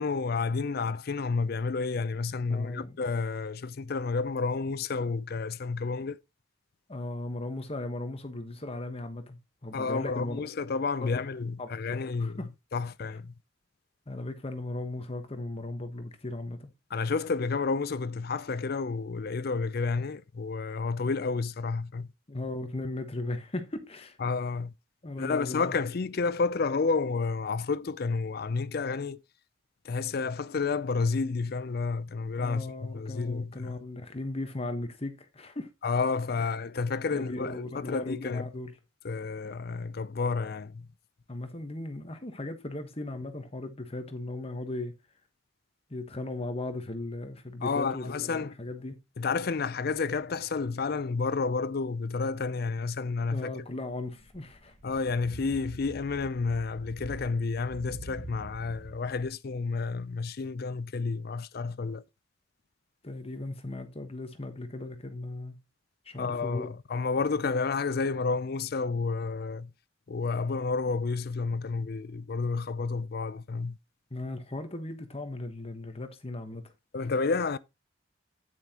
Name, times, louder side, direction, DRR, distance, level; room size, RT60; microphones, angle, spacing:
voice 1, 0.0-6.2 9.7-12.4 12.7-13.3 16.9-22.1 24.2-24.7 25.2-29.2 29.8-33.8 35.8-38.5 39.0-40.9 47.6-48.5 49.2-53.5 54.8-62.0 66.2-69.7 70.1-73.8 76.9-77.6, left 4 dB, 50° left, 0.5 m, -30 dB
voice 2, 2.5-3.0 6.9-10.4 11.0-11.2 11.6-12.5 14.1-16.7 22.3-24.2 25.0-25.8 32.4-35.7 36.4-36.5 37.1-38.7 41.3-44.9 45.9-49.0 53.3-54.7 63.0-65.6 66.0-66.7 74.1-76.7 77.0-77.1, left 2 dB, 30° left, 1.2 m, -37 dB
sound 1, 53.9-59.3, right 1 dB, 40° right, 2.3 m, -46 dB
9.3 x 8.3 x 2.9 m
head